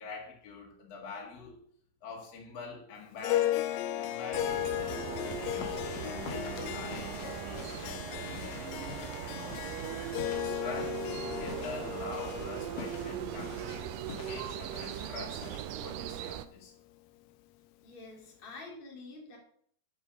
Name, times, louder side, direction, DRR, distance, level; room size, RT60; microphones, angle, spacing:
voice 1, 0.0-1.6 2.0-3.6 4.0-8.9 9.2-9.8 10.4-13.9 14.3-15.4 15.8-16.7, left 4 dB, 50° left, -1 dB, 2.6 m, -45 dB
Harp, 3.2-15.7, left 13 dB, 80° left, 2.3 m, -36 dB
sound 1, 4.3-16.5, right 12 dB, 80° right, 2.0 m, -39 dB
sound 2, 5.2-16.0, left 5 dB, 65° left, 2.7 m, -48 dB
voice 2, 17.8-19.4, left 3 dB, 25° left, -1 dB, 1.4 m, -47 dB
9.8 x 5.5 x 6.3 m, 0.62 s
omnidirectional pair, 4.3 m